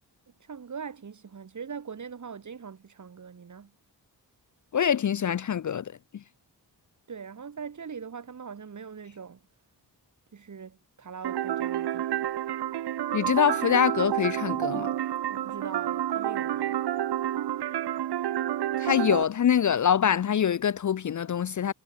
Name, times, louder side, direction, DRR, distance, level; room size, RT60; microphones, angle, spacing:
voice 1, 0.4-3.7 7.1-9.4 10.3-12.3 15.3-16.8, right 6 dB, 45° right, 1.6 m, -41 dB
voice 2, 4.7-6.2 13.1-14.9 18.8-21.7, left 8 dB, 45° left, 0.5 m, -25 dB
sound 1, 11.2-19.2, right 12 dB, 70° right, 0.7 m, -29 dB
wide cardioid pair, 140°, 41 cm